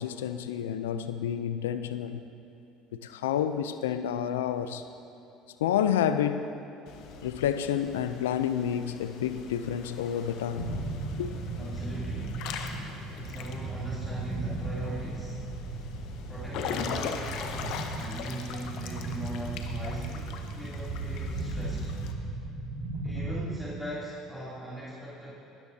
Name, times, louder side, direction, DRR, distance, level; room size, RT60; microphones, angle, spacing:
voice 1, 0.0-2.2 3.0-4.8 5.6-6.5 7.2-10.7 11.2-11.3, left 9 dB, 90° left, 10 dB, 0.5 m, -29 dB
Water / Splash splatter / Drip, 6.9-22.1, left 6 dB, 65° left, 1.1 m, -41 dB
sound 1, 10.6-23.5, right 2 dB, 45° right, 2.7 m, -36 dB
voice 2, 11.6-12.5 13.1-15.4 16.3-21.9 23.0-25.4, right 1 dB, 5° left, -9 dB, 3.2 m, -40 dB
19.5 x 13.5 x 2.8 m, 2.9 s
hypercardioid pair, 75°, 0 cm